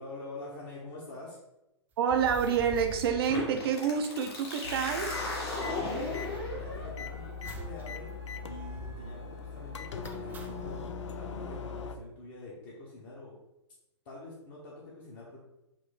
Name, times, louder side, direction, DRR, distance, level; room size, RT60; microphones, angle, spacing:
voice 1, 0.0-1.4 5.6-8.1 8.5-13.4 14.0-15.4, left 2 dB, 40° left, -5 dB, 1.1 m, -45 dB
sound 1, 2.0-4.3 4.6-4.7 4.8-6.9 7.4-7.9 8.1-8.2 8.6-9.1 10.0-10.8, right 3 dB, 10° right, 0.4 m, -46 dB
voice 2, 2.0-5.2, right 7 dB, 55° right, 6 dB, 0.6 m, -28 dB
sound 2, 3.3-10.8, left 2 dB, 60° left, 1.5 m, -39 dB
sound 3, 4.6-12.0, left 5 dB, 75° left, 0.5 m, -40 dB
4.8 x 2.0 x 3.9 m, 0.94 s
hypercardioid pair, 120°, 15 cm